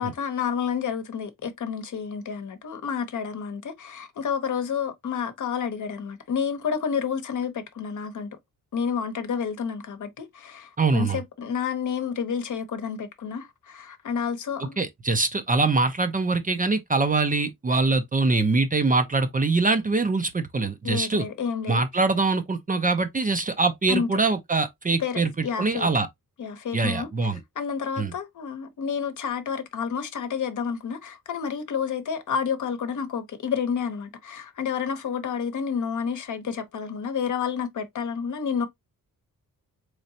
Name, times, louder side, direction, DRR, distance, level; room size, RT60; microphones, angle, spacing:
voice 1, 0.0-8.3 8.7-14.8 20.8-21.8 23.9-24.1 25.0-25.9 26.4-27.1 27.6-38.7, left 6 dB, 60° left, 0.8 m, -30 dB
voice 2, 10.8-11.2 14.8-21.2 21.7-26.1 26.7-27.4 28.0-28.1, right 3 dB, 25° right, 0.5 m, -23 dB
3.9 x 3.2 x 2.6 m
wide cardioid pair, 120°, 35 cm